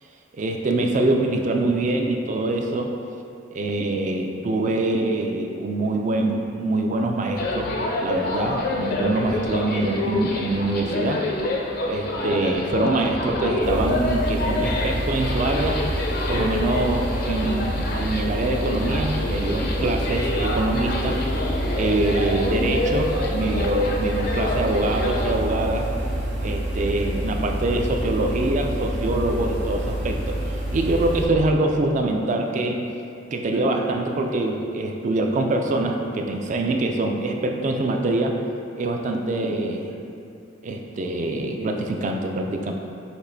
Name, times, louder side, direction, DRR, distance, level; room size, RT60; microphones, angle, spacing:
voice 1, 0.4-2.9 3.5-11.2 11.9-15.8 16.3-21.2 21.7-25.9 26.4-30.4 30.7-32.8 33.3-38.4 38.8-39.9 40.6-42.7, right 2 dB, 40° right, 3 dB, 0.3 m, -24 dB
sound 1, 7.4-25.3, left 2 dB, 50° left, 0.4 m, -27 dB
sound 2, 13.6-31.2, right 1 dB, 65° right, 1.1 m, -28 dB
5.9 x 2.9 x 2.7 m, 2.6 s
head